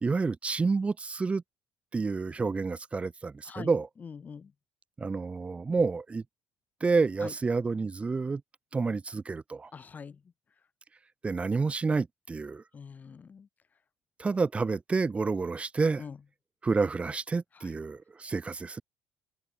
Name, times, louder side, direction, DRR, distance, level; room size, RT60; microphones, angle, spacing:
voice 1, 0.0-1.4 1.9-3.9 5.0-6.2 6.8-8.4 8.7-9.7 11.2-12.6 14.2-16.0 16.6-18.8, right 4 dB, 20° right, 1.4 m, -29 dB
voice 2, 9.7-10.1 12.7-13.4 16.0-16.1, left 6 dB, 30° left, 0.7 m, -43 dB
open air
cardioid pair, 105°, 6 cm